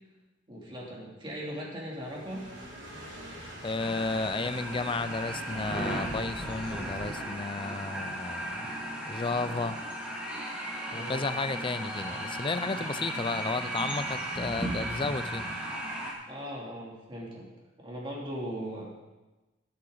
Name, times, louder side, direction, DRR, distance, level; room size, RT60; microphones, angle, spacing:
voice 1, 0.5-2.4 10.9-11.3 16.3-17.5 17.8-19.0, equal, 25° right, -4 dB, 2.9 m, -39 dB
sound 1, 1.9-7.1, equal, 80° right, 4.2 m, -44 dB
voice 2, 3.6-8.6 9.1-9.8 10.9-15.5, left 3 dB, 25° left, 12 dB, 0.5 m, -33 dB
sound 2, 3.8-16.1, right 1 dB, 5° right, 2.2 m, -36 dB
15.0 x 8.5 x 4.0 m, 1.1 s
head